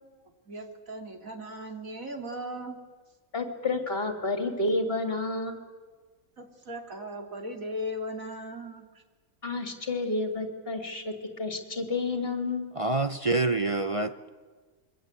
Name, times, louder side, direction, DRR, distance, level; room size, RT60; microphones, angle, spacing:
voice 1, 0.5-2.8 6.4-9.0, equal, 65° right, 3 dB, 3.4 m, -38 dB
voice 2, 3.3-5.5 9.4-12.7, left 2 dB, 40° left, 5 dB, 3.3 m, -30 dB
voice 3, 12.8-14.3, right 3 dB, 30° right, 9 dB, 0.8 m, -27 dB
27.0 x 22.5 x 8.4 m, 1.4 s
omnidirectional pair, 1.5 m